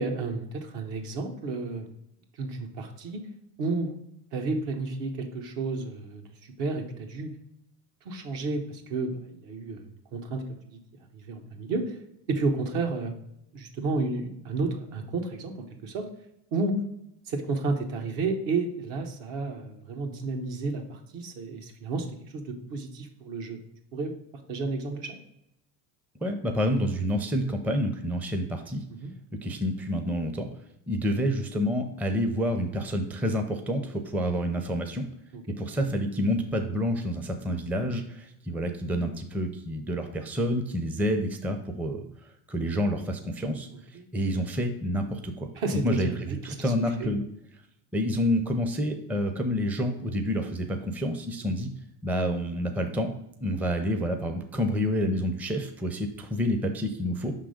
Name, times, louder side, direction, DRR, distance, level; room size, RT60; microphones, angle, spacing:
voice 1, 0.0-1.9 2.4-3.2 3.6-3.9 4.3-6.2 6.6-7.3 8.0-10.4 11.1-12.0 12.3-13.1 13.5-15.5 15.8-16.1 16.5-16.8 17.3-22.1 22.3-23.6 23.9-24.1 24.5-25.2 29.0-29.1 35.3-35.4 43.9-44.0 45.6-46.1 46.6-46.7 47.0-47.1 51.4-51.5, right 3 dB, 65° right, 3 dB, 1.3 m, -31 dB
voice 2, 26.2-28.8 29.4-30.5 30.9-35.0 35.6-42.0 42.5-43.7 44.1-47.2 47.9-51.7 52.0-53.1 53.4-57.3, equal, 5° right, 5 dB, 0.5 m, -28 dB
5.6 x 3.7 x 5.0 m, 0.79 s
supercardioid pair, 100°, 46 cm